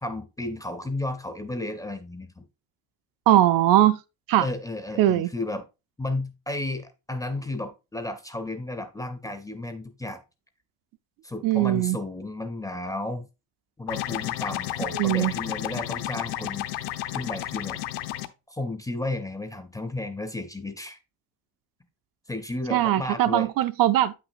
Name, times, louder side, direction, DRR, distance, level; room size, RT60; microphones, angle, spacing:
voice 1, 0.0-2.5 4.4-5.7 6.0-10.2 11.2-13.3 13.8-16.8 17.1-17.8 18.5-21.0 22.3-23.5, left 2 dB, 10° left, 0.4 m, -33 dB
voice 2, 3.3-4.0 4.3-4.5 5.0-5.3 11.4-12.0 14.8-15.3 22.7-24.1, right 13 dB, 55° right, 0.5 m, -20 dB
sound 1, 13.9-18.3, left 14 dB, 80° left, 0.7 m, -32 dB
8.2 x 5.9 x 2.5 m
cardioid pair, 170°, 40 cm